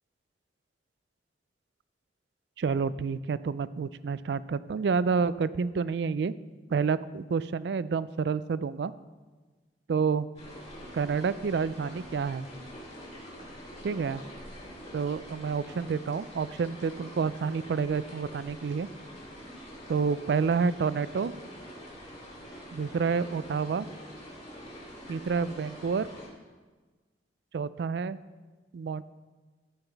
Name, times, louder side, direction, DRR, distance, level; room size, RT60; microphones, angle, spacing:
voice 1, 2.6-6.3 6.7-8.9 9.9-10.3 10.9-12.5 13.8-14.2 14.9-18.9 19.9-21.3 22.7-23.9 25.1-26.1 27.5-28.2 28.7-29.0, right 5 dB, 65° right, 16 dB, 0.3 m, -29 dB
sound 1, 10.3-26.3, equal, 35° left, 3.4 m, -45 dB
14.0 x 5.8 x 4.6 m, 1.3 s
head